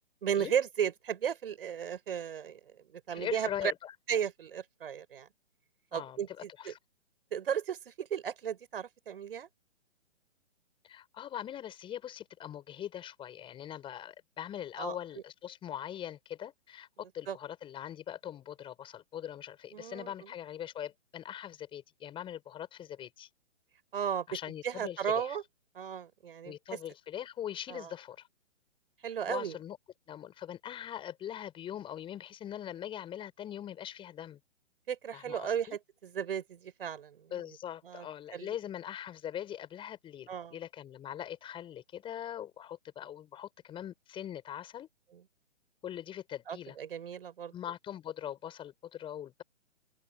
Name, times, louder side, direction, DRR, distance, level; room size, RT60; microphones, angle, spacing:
voice 1, 0.2-2.6 2.9-3.7 4.1-5.3 5.9-6.3 6.7-6.8 7.3-9.5 14.8-14.9 17.3-17.4 19.7-20.1 23.9-24.3 24.6-25.4 25.7-26.5 27.7-27.9 29.0-29.5 34.9-37.2 37.9-38.1 38.3-38.5 40.3-40.5 46.5-47.5, right 8 dB, 50° right, 6.1 m, -34 dB
voice 2, 3.1-3.9 5.9-6.8 10.8-23.3 24.3-25.4 26.4-28.3 29.3-29.8 30.1-34.4 35.1-35.8 37.3-44.9 45.8-46.8 47.5-49.4, left 10 dB, 15° left, 6.0 m, -42 dB
open air
figure-of-eight pair, 130°, 37 cm